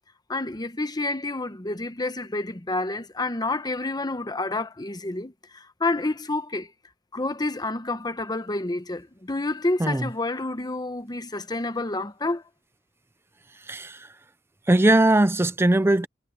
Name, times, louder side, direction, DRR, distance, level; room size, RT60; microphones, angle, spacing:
voice 1, 0.3-6.7 7.1-12.4, left 2 dB, 20° left, 1.0 m, -29 dB
voice 2, 13.7-14.1 14.7-16.1, right 1 dB, 15° right, 0.5 m, -20 dB
head